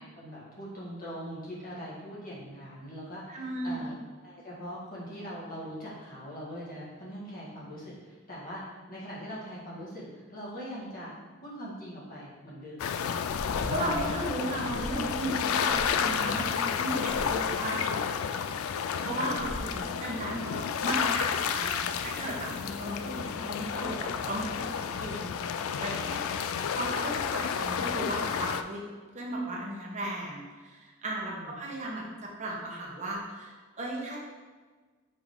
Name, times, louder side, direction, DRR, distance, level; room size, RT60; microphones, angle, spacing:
voice 1, 0.1-4.0 4.2-11.1 11.4-12.9 13.5-14.1 14.7-14.8 19.0-19.3 26.7-26.8 27.4-27.5 31.2-31.6, equal, 40° left, -7 dB, 1.8 m, -42 dB
voice 2, 3.3-3.9 13.6-18.6 19.0-28.8 29.1-32.0 32.4-34.2, right 1 dB, 35° right, -2 dB, 1.1 m, -36 dB
sound 1, 12.8-28.6, left 7 dB, 70° left, 0.3 m, -31 dB
sound 2, 13.3-14.1 14.7-15.1 15.7-16.0 17.1-17.4 19.4-19.8, equal, 10° right, 0.6 m, -40 dB
5.1 x 5.0 x 3.7 m, 1.4 s
head